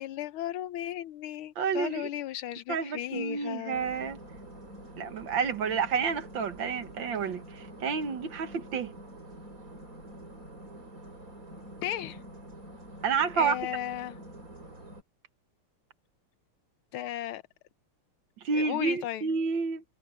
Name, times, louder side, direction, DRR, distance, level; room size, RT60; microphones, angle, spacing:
voice 1, 0.0-3.9 11.8-12.2 13.4-14.2 16.9-17.4 18.5-19.3, left 12 dB, 80° left, 1.6 m, -35 dB
voice 2, 1.6-2.1 2.7-4.2 5.0-8.9 13.0-13.6 18.4-19.8, right 5 dB, 60° right, 2.0 m, -30 dB
sound 1, 3.7-15.0, right 1 dB, 40° right, 6.9 m, -47 dB
omnidirectional pair, 2.4 m